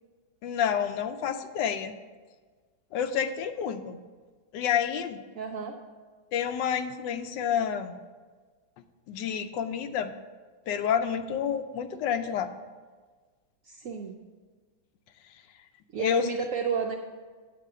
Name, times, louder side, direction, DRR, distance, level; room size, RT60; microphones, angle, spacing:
voice 1, 0.4-1.9 2.9-4.0 4.5-5.2 6.3-8.0 9.1-10.1 10.7-12.5 16.0-16.3, left 8 dB, 80° left, 9 dB, 1.2 m, -29 dB
voice 2, 5.3-5.8 13.6-14.1 15.9-17.0, right 6 dB, 75° right, 2 dB, 0.7 m, -31 dB
9.0 x 4.4 x 7.4 m, 1.5 s
omnidirectional pair, 1.9 m